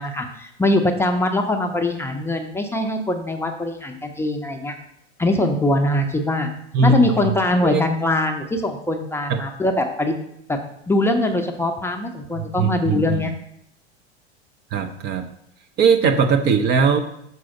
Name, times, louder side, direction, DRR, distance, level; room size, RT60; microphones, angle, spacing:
voice 1, 0.0-4.7 5.2-6.5 6.8-10.1 10.5-10.6 10.9-13.3, left 1 dB, 5° left, 4 dB, 0.6 m, -22 dB
voice 2, 6.7-7.1 7.6-7.8 9.3-9.4 12.4-13.3 14.7-15.3 15.8-17.0, right 4 dB, 30° right, 6 dB, 0.6 m, -19 dB
6.2 x 4.1 x 5.9 m, 0.76 s
figure-of-eight pair, 80°, 33 cm